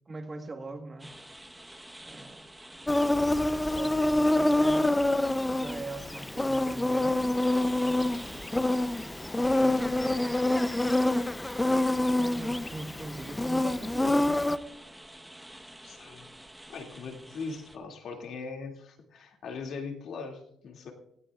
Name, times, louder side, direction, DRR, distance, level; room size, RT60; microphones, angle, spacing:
voice 1, 0.1-1.1 2.0-2.5 3.7-5.0 5.5-7.2 8.1-8.6 9.4-9.8 12.2-14.4, right 2 dB, 25° right, 7 dB, 1.4 m, -41 dB
sound 1, 1.0-17.8, right 1 dB, 5° right, 1.1 m, -49 dB
Insect, 2.9-14.6, left 1 dB, 10° left, 0.6 m, -26 dB
voice 2, 9.2-10.4 15.5-16.3 16.7-20.9, left 4 dB, 65° left, 3 dB, 2.4 m, -41 dB
19.0 x 17.0 x 2.4 m, 0.77 s
cardioid pair, 105°, 0 cm